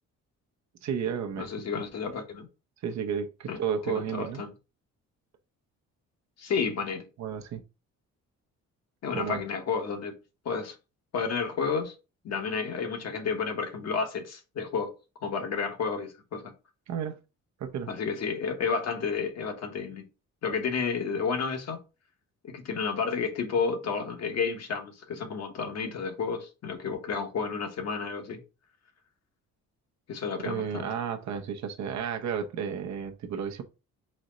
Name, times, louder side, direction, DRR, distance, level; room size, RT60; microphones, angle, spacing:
voice 1, 0.8-1.7 2.8-4.4 7.2-7.6 9.1-9.4 16.9-17.2 17.6-17.9 30.4-33.6, right 7 dB, 65° right, 0.7 m, -32 dB
voice 2, 1.4-2.5 3.5-4.5 6.4-7.0 9.0-10.1 10.4-10.7 11.1-11.9 12.2-14.9 15.2-16.5 17.9-20.0 20.4-21.8 22.4-28.4 30.1-30.9, left 5 dB, 60° left, 1.0 m, -31 dB
4.2 x 2.0 x 3.7 m
cardioid pair, 90°, 30 cm